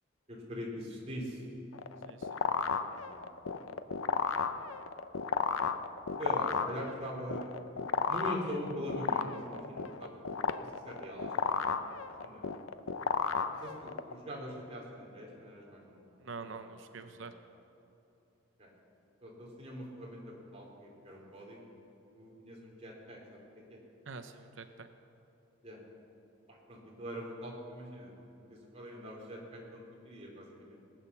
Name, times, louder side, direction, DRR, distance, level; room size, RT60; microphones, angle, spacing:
voice 1, 0.3-1.5 2.6-3.2 6.2-7.5 8.1-11.7 12.2-12.5 13.6-16.6 16.9-17.3 18.6-18.7 19.2-21.6 22.1-23.8 25.6-25.8 26.5-28.1 28.5-30.8, equal, 30° right, -3 dB, 3.1 m, -43 dB
sound 1, 1.7-14.1, left 5 dB, 85° left, 0.6 m, -33 dB
voice 2, 2.1-2.4 16.2-17.3 24.1-24.9, right 4 dB, 70° right, 8 dB, 0.6 m, -45 dB
19.5 x 8.8 x 6.9 m, 2.9 s
head